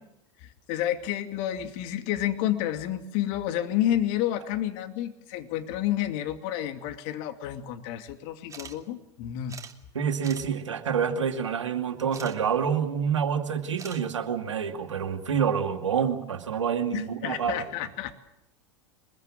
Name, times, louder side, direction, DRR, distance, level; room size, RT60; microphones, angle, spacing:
voice 1, 0.4-9.6 16.9-18.1, left 12 dB, 55° left, 7 dB, 2.6 m, -30 dB
sound 1, 8.5-8.7 9.0-9.1 9.5-9.7 10.2-10.5 12.1-12.4 13.8-14.0, right 6 dB, 20° right, 2.5 m, -43 dB
voice 2, 9.9-17.6, right 7 dB, 85° right, 5 dB, 2.5 m, -27 dB
23.5 x 22.0 x 7.5 m, 0.85 s
hypercardioid pair, 90°, 15 cm